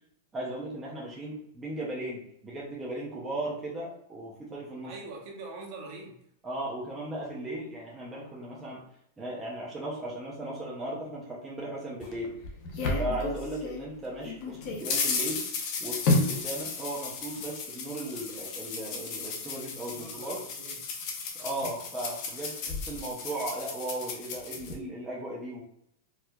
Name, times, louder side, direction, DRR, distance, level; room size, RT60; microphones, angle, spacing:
voice 1, 0.3-4.9 6.4-8.8 9.2-12.3 13.0-15.4 15.8-20.4 21.4-25.6, right 1 dB, 10° right, -5 dB, 0.5 m, -36 dB
voice 2, 4.8-6.2 19.9-21.0, right 3 dB, 45° right, 0 dB, 0.8 m, -43 dB
sound 1, 12.0-13.9 14.2-24.7, left 3 dB, 40° left, 0.6 m, -33 dB
4.4 x 2.3 x 2.2 m, 0.73 s
supercardioid pair, 165°, 0 cm